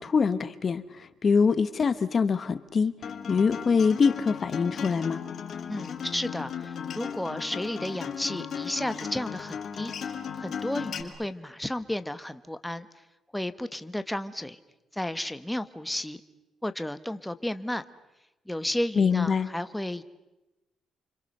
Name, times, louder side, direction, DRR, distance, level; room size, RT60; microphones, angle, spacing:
voice 1, 0.0-2.9 3.3-5.2 19.0-19.5, left 5 dB, 40° left, 13 dB, 1.1 m, -24 dB
Acoustic guitar, 3.0-11.0, left 7 dB, 55° left, 3.0 m, -36 dB
voice 2, 5.7-9.9 10.4-12.9 13.3-14.6 14.9-16.2 16.6-17.8 18.5-20.0, left 1 dB, 5° left, 11 dB, 1.2 m, -33 dB
29.5 x 26.0 x 6.7 m, 1.0 s
cardioid pair, 115°, 0 cm